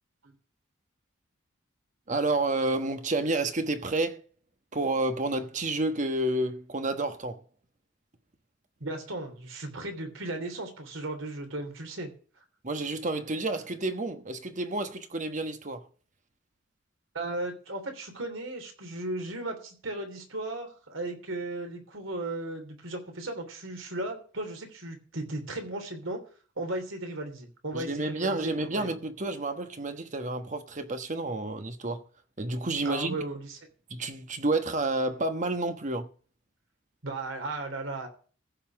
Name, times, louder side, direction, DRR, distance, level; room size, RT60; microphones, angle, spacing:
voice 1, 2.1-4.2 4.7-7.4 12.6-15.9 27.7-32.0 32.4-33.2 33.9-36.1, right 2 dB, 40° right, 1.2 m, -30 dB
voice 2, 8.8-12.1 17.1-26.2 26.6-28.9 32.8-33.6 37.0-38.1, right 2 dB, 80° right, 3.2 m, -36 dB
15.0 x 5.7 x 7.3 m
head